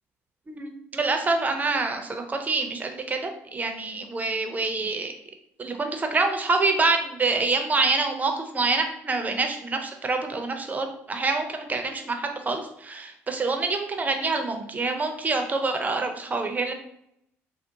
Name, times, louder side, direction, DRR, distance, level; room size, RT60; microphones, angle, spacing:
voice 1, 0.5-5.1 5.6-16.7, right 3 dB, 25° right, 5 dB, 0.6 m, -26 dB
3.6 x 2.1 x 2.7 m, 0.76 s
supercardioid pair, 70°, 6 cm